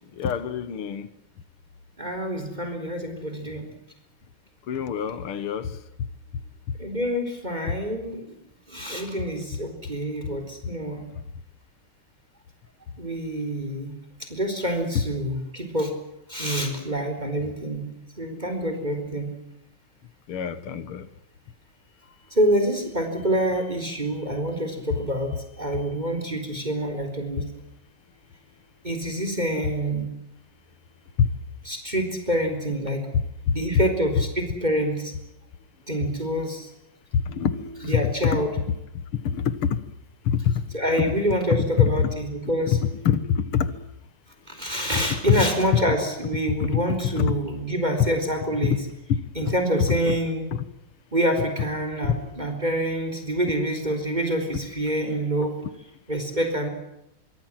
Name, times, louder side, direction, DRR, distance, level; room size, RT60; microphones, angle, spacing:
voice 1, 0.2-1.1 4.7-5.7 20.3-21.1 31.2-31.3 37.3-37.9 39.3-39.8 40.3-40.5 41.5-41.9 42.8-43.7 46.6-47.3 48.6-48.8, left 8 dB, 80° left, 13 dB, 2.4 m, -25 dB
voice 2, 2.0-3.7 6.8-8.3 8.7-11.0 13.0-14.0 14.3-16.0 16.3-17.9 18.2-19.3 22.3-27.5 28.8-30.1 31.6-33.1 33.5-35.1 35.9-36.7 37.8-38.5 40.7-42.8 44.5-48.8 49.3-50.5 51.1-55.5 56.1-56.7, right 1 dB, 20° right, 5 dB, 4.3 m, -26 dB
25.5 x 24.0 x 7.6 m, 0.85 s
omnidirectional pair, 2.4 m